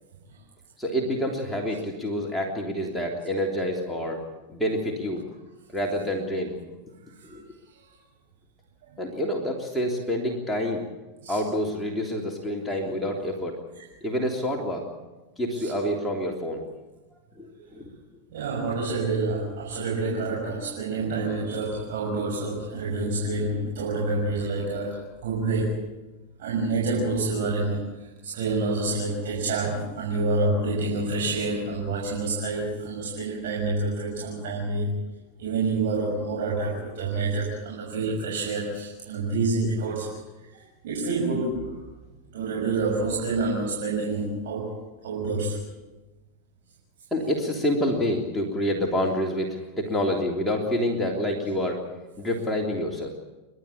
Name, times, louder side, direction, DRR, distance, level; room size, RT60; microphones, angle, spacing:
voice 1, 0.8-4.2 4.5-5.2 5.7-6.7 7.3-7.5 9.0-10.8 11.3-13.6 14.0-14.8 15.4-16.7 17.4-17.9 47.1-51.8 52.2-53.1, equal, 10° left, -1 dB, 3.4 m, -27 dB
voice 2, 18.3-25.8 26.4-34.9 35.4-41.7 42.3-44.8 45.0-45.6, right 3 dB, 70° right, -2 dB, 6.5 m, -28 dB
29.5 x 12.5 x 8.6 m, 1.1 s
hypercardioid pair, 110°, 0 cm